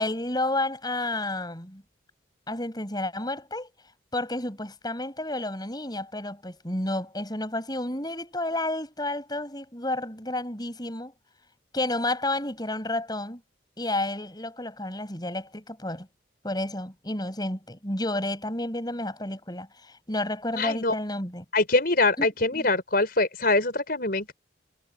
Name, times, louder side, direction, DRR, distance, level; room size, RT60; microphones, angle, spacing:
voice 1, 0.0-1.8 2.5-3.7 4.1-11.1 11.7-13.4 13.8-16.1 16.4-21.4 22.2-22.3 22.5-22.7, left 1 dB, 20° left, 7.3 m, -31 dB
voice 2, 20.5-20.9 21.5-24.3, left 2 dB, 50° left, 5.9 m, -24 dB
head